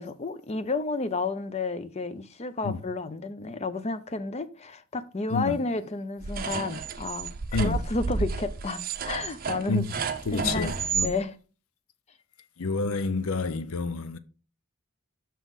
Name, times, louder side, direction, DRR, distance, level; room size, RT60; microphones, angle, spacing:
voice 1, 0.0-7.3 7.6-9.8 10.3-10.7 11.0-11.3, left 3 dB, 30° left, 0.5 m, -31 dB
sound 1, 6.2-11.1, right 5 dB, 45° right, 0.6 m, -31 dB
voice 2, 10.3-11.1 12.6-14.2, left 4 dB, 80° left, 0.6 m, -29 dB
6.1 x 5.6 x 4.0 m
head